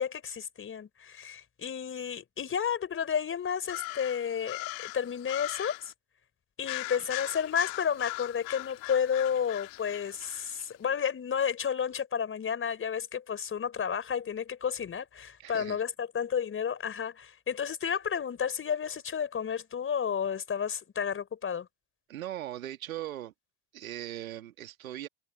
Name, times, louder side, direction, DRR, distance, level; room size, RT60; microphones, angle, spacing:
voice 1, 0.0-5.9 6.6-21.7, left 7 dB, 30° left, 5.1 m, -31 dB
sound 1, 3.6-5.9 6.6-10.7, left 28 dB, 55° left, 2.1 m, -39 dB
voice 2, 15.4-15.8 22.1-23.3 23.7-25.1, right 13 dB, 75° right, 2.7 m, -39 dB
figure-of-eight pair, 75°, 42 cm